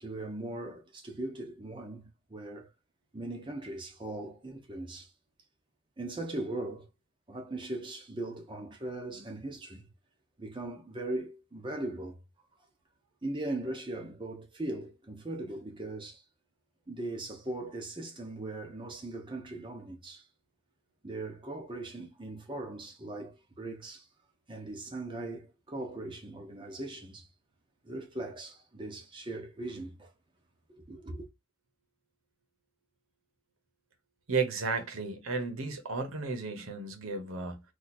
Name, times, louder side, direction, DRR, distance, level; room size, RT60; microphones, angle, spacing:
voice 1, 0.0-2.7 3.1-5.1 6.0-6.9 7.3-9.9 10.4-12.2 13.2-16.2 16.9-20.3 21.0-24.1 24.5-27.3 27.8-30.1 30.8-31.3, right 2 dB, 25° right, 0.8 m, -39 dB
voice 2, 34.3-37.6, right 4 dB, 85° right, 0.9 m, -33 dB
2.8 x 2.5 x 4.1 m
head